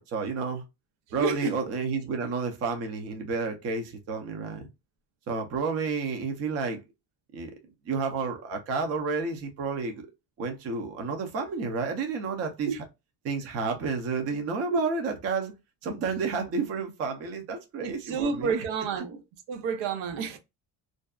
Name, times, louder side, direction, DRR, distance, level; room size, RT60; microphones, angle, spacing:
voice 1, 0.1-0.6 1.1-4.7 5.3-6.8 7.3-7.5 7.9-10.1 10.4-12.7 13.2-15.5 15.8-18.6, right 4 dB, 35° right, 0.5 m, -30 dB
voice 2, 1.1-1.6 12.7-12.8 14.7-14.8 17.8-19.2 19.5-20.4, right 5 dB, 85° right, 0.7 m, -30 dB
2.6 x 2.2 x 2.2 m
cardioid pair, 175°, 42 cm